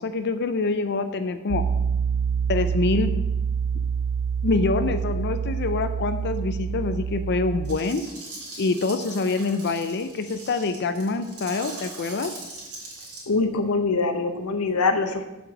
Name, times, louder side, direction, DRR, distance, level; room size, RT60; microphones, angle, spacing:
voice 1, 0.0-1.6 2.5-3.1 3.7-3.9 4.4-8.0 8.6-12.3, left 3 dB, 50° left, 9 dB, 0.5 m, -25 dB
Piano, 1.5-7.8, right 6 dB, 65° right, 0.4 m, -26 dB
sound 1, 7.6-13.2, right 2 dB, 80° right, 3.2 m, -40 dB
voice 2, 13.3-15.2, left 3 dB, 80° left, 7 dB, 0.8 m, -23 dB
7.2 x 5.1 x 7.0 m, 1.0 s
head